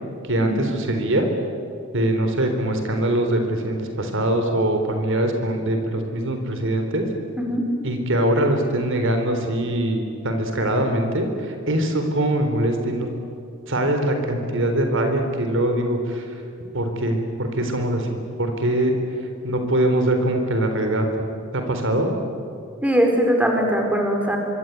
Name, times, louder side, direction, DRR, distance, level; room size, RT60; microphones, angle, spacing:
voice 1, 0.2-1.3 1.9-7.1 7.8-13.1 13.7-16.3 16.7-18.9 19.4-21.1 21.5-22.1, right 1 dB, 65° right, 5 dB, 4.1 m, -22 dB
voice 2, 22.8-24.4, equal, 5° right, 2 dB, 4.9 m, -20 dB
25.5 x 25.0 x 9.5 m, 2.6 s
head